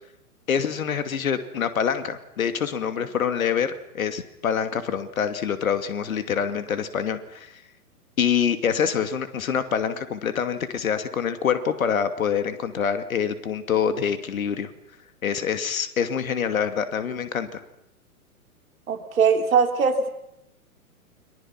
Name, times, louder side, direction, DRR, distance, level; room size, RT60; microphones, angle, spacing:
voice 1, 0.5-7.6 8.2-14.7 15.2-17.6, left 7 dB, 65° left, 9 dB, 2.6 m, -26 dB
voice 2, 18.9-20.1, right 6 dB, 65° right, 6 dB, 4.0 m, -21 dB
29.0 x 24.0 x 6.0 m, 0.80 s
figure-of-eight pair, 120°, 44 cm